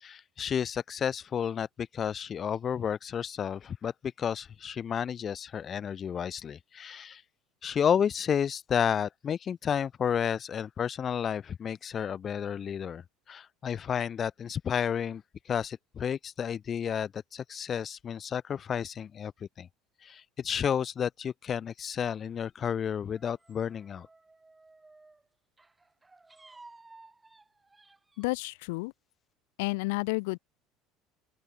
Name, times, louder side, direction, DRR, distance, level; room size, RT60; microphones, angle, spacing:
voice 1, 0.0-3.9 4.2-7.2 7.6-15.2 15.5-19.7 20.0-24.1, left 8 dB, 25° left, 1.9 m, -31 dB
sound 1, 23.1-25.3 25.6-28.4, right 3 dB, 10° right, 4.7 m, -56 dB
voice 2, 28.2-28.9 29.6-30.4, left 27 dB, 85° left, 2.4 m, -31 dB
open air
cardioid pair, 165°, 0 cm